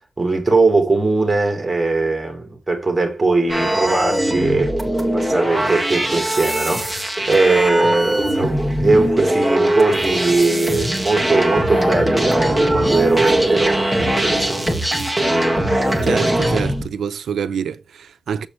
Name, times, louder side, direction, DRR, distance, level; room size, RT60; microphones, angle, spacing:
voice 1, 0.2-15.1, right 3 dB, 25° right, 2.8 m, -20 dB
sound 1, 3.5-16.9, right 1 dB, ahead, 1.6 m, -20 dB
voice 2, 16.0-18.5, right 7 dB, 85° right, 0.6 m, -26 dB
7.2 x 6.8 x 3.1 m
wide cardioid pair, 115°, 0 cm